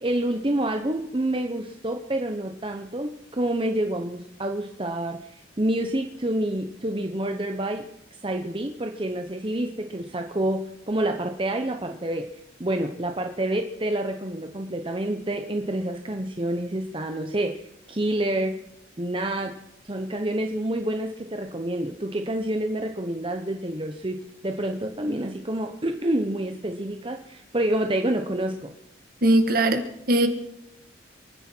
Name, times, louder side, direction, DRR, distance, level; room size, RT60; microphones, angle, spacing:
voice 1, 0.0-7.8 8.2-12.3 12.6-17.5 17.9-18.5 19.0-19.5 19.8-24.2 24.4-28.7, right 1 dB, 25° right, 4 dB, 0.9 m, -28 dB
voice 2, 29.2-30.3, right 1 dB, 50° right, 7 dB, 1.7 m, -20 dB
29.0 x 10.0 x 4.6 m, 0.84 s
head